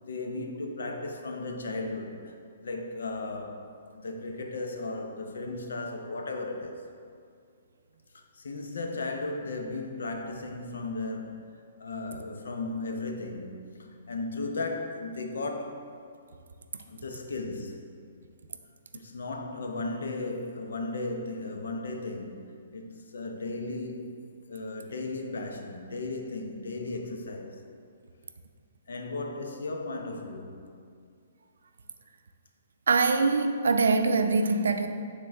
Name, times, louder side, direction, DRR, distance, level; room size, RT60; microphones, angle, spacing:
voice 1, 0.0-2.4 2.6-3.6 3.9-6.9 8.1-15.9 16.9-18.0 18.9-27.6 28.9-30.7, left 2 dB, 90° left, 0.8 m, -36 dB
voice 2, 32.9-34.9, right 4 dB, 90° right, 0.5 m, -23 dB
8.8 x 3.8 x 3.4 m
hypercardioid pair, 160°, 0 cm